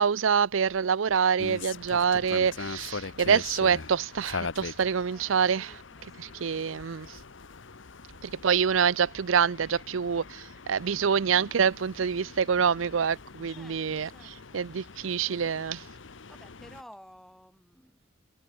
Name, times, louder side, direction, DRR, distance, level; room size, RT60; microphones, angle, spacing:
voice 1, 0.0-5.7 6.2-7.2 8.2-15.8, right 7 dB, 75° right, 0.5 m, -26 dB
sound 1, 1.4-16.8, left 4 dB, 65° left, 1.0 m, -42 dB
voice 2, 5.1-6.5 13.5-14.9 16.3-18.1, equal, ahead, 6.0 m, -54 dB
head